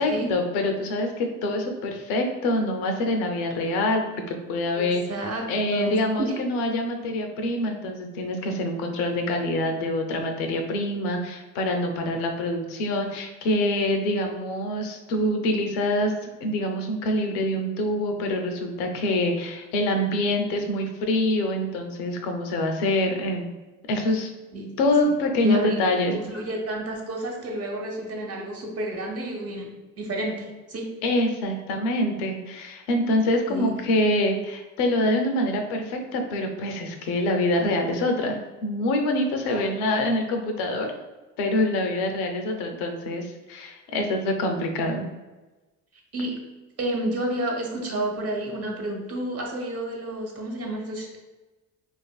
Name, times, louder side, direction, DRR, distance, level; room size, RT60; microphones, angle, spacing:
voice 1, 0.0-5.0 5.5-23.5 23.9-24.3 24.8-26.1 31.0-40.9 41.4-45.1, left 1 dB, 90° left, 4 dB, 0.5 m, -25 dB
voice 2, 4.7-6.4 24.5-24.7 25.4-25.8 26.1-30.9 33.5-33.8 39.4-39.7 46.1-46.4 46.8-51.2, right 1 dB, 40° right, 0 dB, 0.8 m, -30 dB
2.8 x 2.5 x 2.2 m, 1.1 s
supercardioid pair, 65°, 39 cm